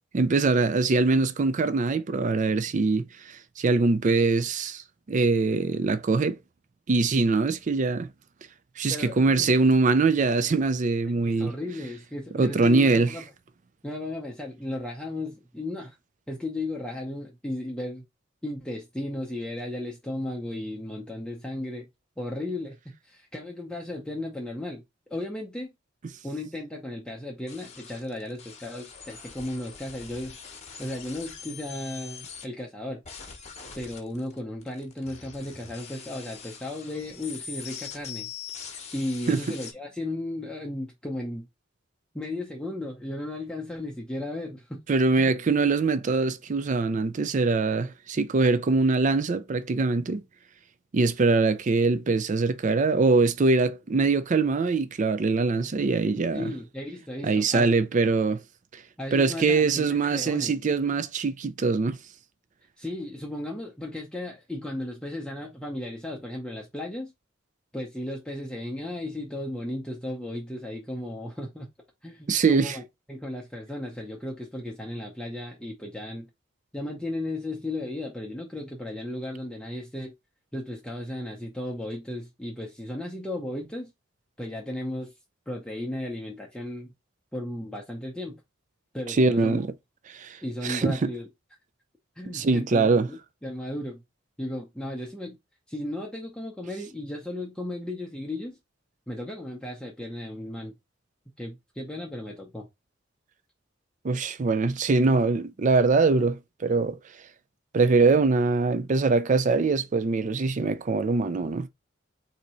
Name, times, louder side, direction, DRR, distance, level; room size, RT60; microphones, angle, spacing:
voice 1, 0.1-4.8 5.1-6.4 6.9-8.1 8.8-11.5 12.3-13.1 39.3-39.4 44.9-50.2 50.9-56.5 57.2-58.4 59.1-62.0 72.3-72.8 89.1-89.7 90.1-91.1 92.3-93.1 104.0-107.0 107.7-111.7, right 3 dB, 40° right, 0.4 m, -23 dB
voice 2, 8.9-9.5 11.3-13.3 13.8-16.0 16.3-18.0 18.4-21.9 22.2-24.8 25.1-25.7 26.2-30.4 30.8-33.0 33.8-38.3 38.9-41.5 42.1-44.8 45.1-45.3 56.3-57.7 59.0-60.5 62.8-67.1 67.7-71.7 72.0-72.8 73.1-76.3 76.7-80.1 80.5-83.9 84.4-85.1 85.5-86.9 87.3-88.4 88.9-89.6 90.4-91.3 92.2-94.0 94.4-95.4 95.7-98.6 99.1-100.7 101.4-102.7, left 1 dB, 5° left, 0.7 m, -35 dB
sound 1, 27.5-32.4 33.0-39.7, left 6 dB, 35° left, 1.0 m, -43 dB
3.9 x 2.8 x 4.2 m
head